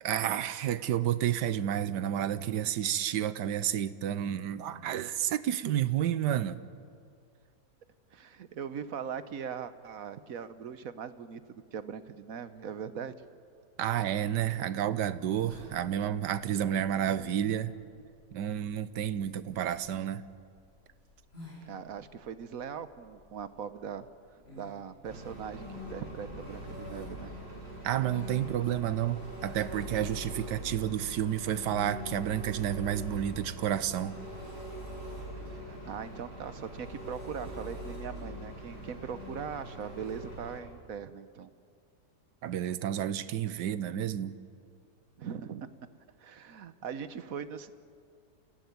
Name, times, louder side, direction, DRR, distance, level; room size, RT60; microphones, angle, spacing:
voice 1, 0.0-6.6 13.8-17.7 18.3-20.3 27.8-34.2 42.4-44.4, right 10 dB, 85° right, 15 dB, 1.4 m, -30 dB
voice 2, 8.1-13.1 21.6-24.1 24.5-27.3 35.5-41.5 45.2-45.7 46.2-47.7, right 7 dB, 60° right, 12 dB, 1.2 m, -40 dB
sound 1, 15.4-31.1, left 2 dB, 35° left, 8.1 m, -56 dB
Engine, 25.0-40.6, equal, 35° right, 7.4 m, -42 dB
28.0 x 17.0 x 9.5 m, 2.3 s
omnidirectional pair, 1.8 m